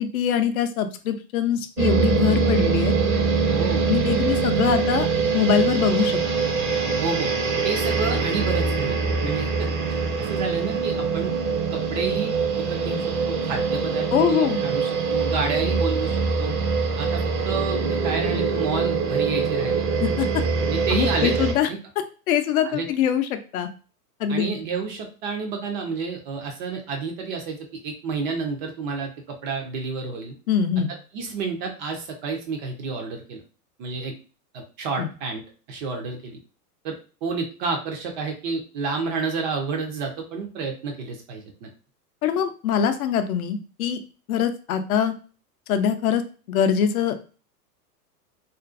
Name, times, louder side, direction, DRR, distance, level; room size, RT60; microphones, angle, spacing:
voice 1, 0.0-2.9 3.9-5.1 5.3-6.2 14.1-14.6 20.0-20.3 20.9-21.7 22.3-23.7 24.2-24.5 30.5-30.9 35.0-35.1 42.2-44.0 44.3-45.1 45.7-46.2 46.5-47.1, left 8 dB, 65° left, 8 dB, 0.5 m, -23 dB
sound 1, 1.8-21.5, right 5 dB, 60° right, 0.8 m, -23 dB
voice 2, 3.5-3.8 7.0-7.3 7.6-9.7 10.3-11.3 11.7-16.5 17.0-19.8 20.2-20.3 20.7-21.3 21.7-21.8 22.7-22.9 24.3-27.6 27.8-30.3 30.9-33.4 33.8-34.1 34.5-35.4 35.7-36.4 36.8-41.7, right 4 dB, 30° right, 3 dB, 0.4 m, -30 dB
2.5 x 2.2 x 2.4 m, 0.36 s
hypercardioid pair, 110°, 47 cm